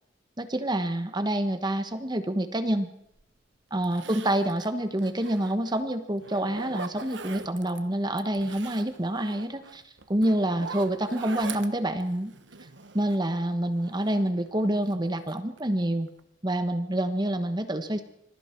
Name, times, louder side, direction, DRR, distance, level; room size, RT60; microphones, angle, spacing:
voice 1, 0.4-2.9 3.7-9.8 10.1-12.3 12.9-16.1 16.4-18.0, right 1 dB, 25° right, 9 dB, 1.2 m, -27 dB
Zipper (clothing), 3.2-3.3 3.8-5.8 6.2-7.8 8.2-13.3 13.7-14.9 15.3-15.8 16.1-16.2, right 4 dB, 75° right, 1.3 m, -42 dB
26.0 x 21.5 x 4.6 m, 0.79 s
head